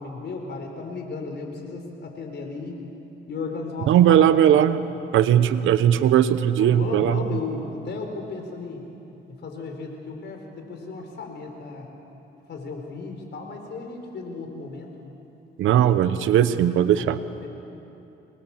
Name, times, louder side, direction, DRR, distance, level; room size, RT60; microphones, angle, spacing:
voice 1, 0.0-2.8 3.3-4.6 6.6-8.8 9.3-11.9 12.5-14.9 17.0-17.1 17.4-17.5, left 4 dB, 60° left, 3 dB, 4.4 m, -35 dB
voice 2, 3.9-4.8 5.1-7.2 15.6-17.2, right 10 dB, 80° right, 13 dB, 1.0 m, -18 dB
25.5 x 21.0 x 7.3 m, 2.9 s
cardioid pair, 90°, 20 cm